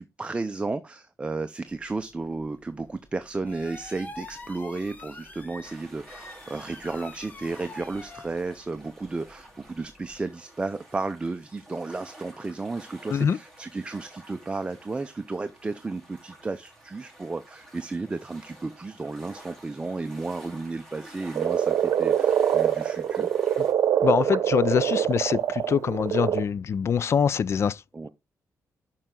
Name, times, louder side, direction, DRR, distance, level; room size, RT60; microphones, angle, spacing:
voice 1, 0.0-23.3 27.9-28.1, right 3 dB, 20° right, 0.6 m, -33 dB
sound 1, 1.7-10.3, left 2 dB, 25° left, 1.1 m, -47 dB
sound 2, 5.6-23.7, right 1 dB, 10° left, 3.6 m, -50 dB
Frog, 21.4-26.4, right 9 dB, 70° right, 0.8 m, -24 dB
voice 2, 24.0-27.7, left 7 dB, 45° left, 0.4 m, -24 dB
9.2 x 5.6 x 3.8 m
cardioid pair, 130°, 6 cm